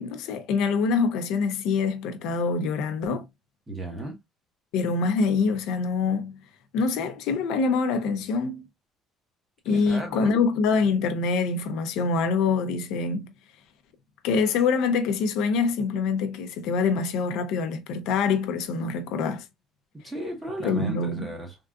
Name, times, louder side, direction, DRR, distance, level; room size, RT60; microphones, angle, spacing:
voice 1, 0.0-3.2 4.7-6.4 6.7-8.6 9.7-13.3 14.2-19.5 20.6-21.3, left 4 dB, 70° left, 0.5 m, -25 dB
voice 2, 3.7-4.2 9.7-10.4 20.0-21.6, right 1 dB, 10° right, 1.0 m, -34 dB
3.6 x 2.4 x 2.3 m
cardioid pair, 175°, 0 cm